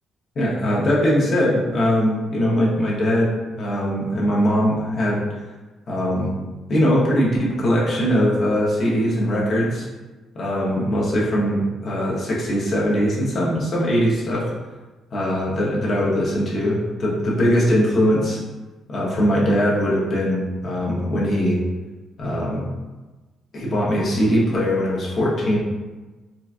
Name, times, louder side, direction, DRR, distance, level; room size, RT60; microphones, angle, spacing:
voice 1, 0.4-5.2 5.9-6.3 6.7-9.9 10.3-14.5 15.1-18.4 18.9-21.6 22.2-22.6 23.5-25.6, equal, 50° left, -4 dB, 0.9 m, -21 dB
3.8 x 2.3 x 2.4 m, 1.2 s
cardioid pair, 90°, 0 cm